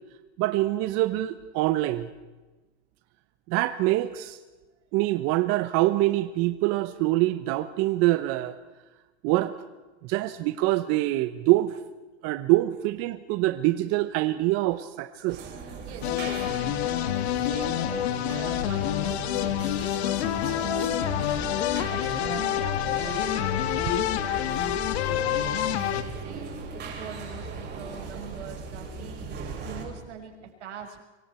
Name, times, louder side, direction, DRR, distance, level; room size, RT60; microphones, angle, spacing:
voice 1, 0.4-2.1 3.5-4.4 4.9-8.6 9.2-9.5 10.0-11.8 12.2-15.4, right 17 dB, 45° right, 11 dB, 1.1 m, -25 dB
sound 1, 15.3-29.8, right 3 dB, 30° right, 7.1 m, -38 dB
voice 2, 15.8-19.7 20.1-23.2 24.1-26.6 26.9-29.4 29.6-31.0, right 7 dB, 85° right, 3 dB, 6.0 m, -43 dB
sound 2, 16.0-26.0, left 11 dB, 70° left, 1.9 m, -27 dB
25.0 x 25.0 x 4.5 m, 1.2 s
supercardioid pair, 125°, 34 cm